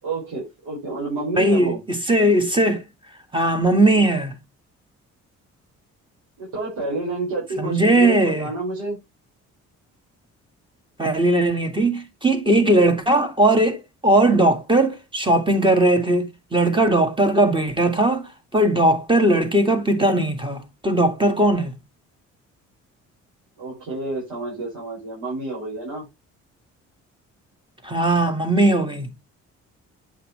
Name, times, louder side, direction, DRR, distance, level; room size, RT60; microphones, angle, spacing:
voice 1, 0.0-1.8 6.4-9.0 23.6-26.1, right 2 dB, 85° right, 5.3 m, -29 dB
voice 2, 1.4-2.8 3.3-4.3 7.6-8.5 11.0-21.7 27.8-29.1, right 1 dB, 15° right, 1.9 m, -19 dB
8.6 x 5.6 x 3.2 m
cardioid pair, 90°, 30 cm